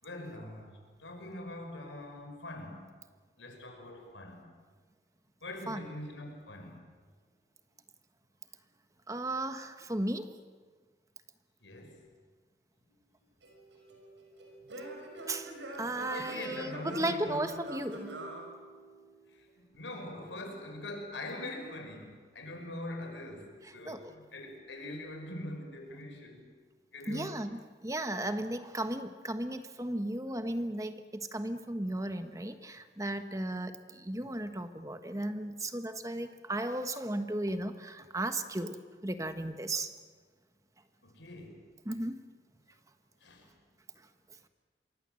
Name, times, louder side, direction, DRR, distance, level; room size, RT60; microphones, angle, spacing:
voice 1, 0.0-2.9 3.4-4.5 5.4-6.8 11.6-12.0 12.8-12.9 16.1-17.4 19.3-26.5 26.9-27.4 28.2-28.5 41.0-41.7 43.2-43.5, left 1 dB, 90° left, 4 dB, 5.6 m, -43 dB
voice 2, 9.1-10.3 15.3-15.5 15.8-18.1 23.9-24.0 27.1-39.9 41.8-42.2, right 1 dB, 15° right, 9 dB, 1.2 m, -35 dB
Singing / Plucked string instrument, 13.4-19.3, right 1 dB, 85° right, 6.0 m, -45 dB
27.5 x 23.0 x 7.7 m, 1.5 s
head